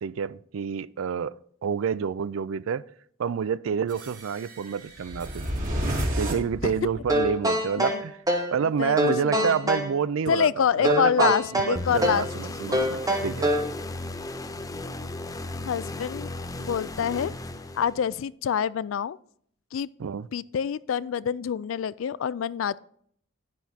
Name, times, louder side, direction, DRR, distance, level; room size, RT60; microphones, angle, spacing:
voice 1, 0.0-1.3 1.6-2.8 3.2-5.5 6.2-8.2 8.5-13.5 20.0-20.3, right 7 dB, 85° right, 0.4 m, -28 dB
sound 1, 3.9-7.3, equal, 40° right, 2.7 m, -31 dB
sound 2, 7.1-8.6 9.0-9.9 10.8-12.3 12.7-13.7, equal, 20° right, 1.1 m, -25 dB
voice 2, 8.6-9.0 9.2-9.6 10.3-12.5 15.6-16.3 16.6-17.3 17.8-19.2 19.7-19.9 20.3-22.8, left 8 dB, 75° left, 0.3 m, -26 dB
sound 3, 11.8-18.2, left 2 dB, 15° left, 0.6 m, -36 dB
10.5 x 10.0 x 2.8 m
head